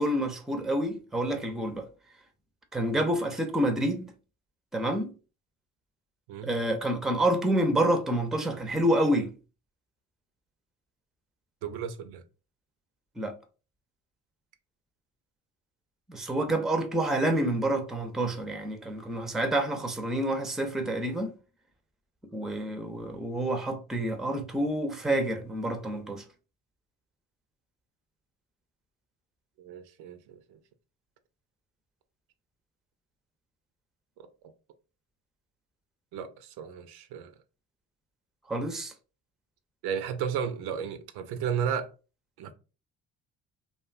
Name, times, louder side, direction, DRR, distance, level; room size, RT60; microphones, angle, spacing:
voice 1, 0.0-1.9 2.7-4.1 4.7-5.1 6.4-9.3 13.2-13.3 16.1-21.3 22.3-26.2 38.5-38.9, right 1 dB, ahead, 0.4 m, -28 dB
voice 2, 11.6-12.2 29.6-30.6 34.2-34.5 36.1-37.3 39.8-41.9 42.4-42.5, right 7 dB, 75° right, 0.5 m, -34 dB
2.6 x 2.2 x 2.4 m
supercardioid pair, 55°, 39 cm